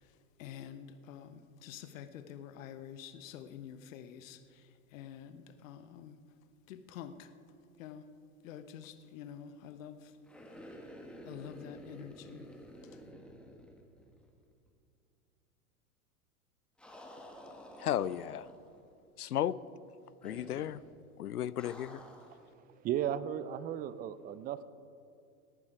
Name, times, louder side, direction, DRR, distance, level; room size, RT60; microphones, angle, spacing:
voice 1, 0.4-4.4 4.9-6.2 6.7-7.3 7.8-8.0 8.4-10.0 11.3-12.4, left 9 dB, 60° left, 10 dB, 1.0 m, -47 dB
sound 1, 10.2-14.4 14.7-14.8 16.8-18.8 20.2-20.9 21.6-22.4, equal, ahead, 1.7 m, -51 dB
voice 2, 17.8-18.5 19.2-19.6 20.2-20.8 21.2-22.0, left 11 dB, 85° left, 19 dB, 0.6 m, -34 dB
voice 3, 22.8-24.6, right 10 dB, 20° right, 16 dB, 0.4 m, -35 dB
18.0 x 11.0 x 4.8 m, 2.5 s
hypercardioid pair, 95°, 44 cm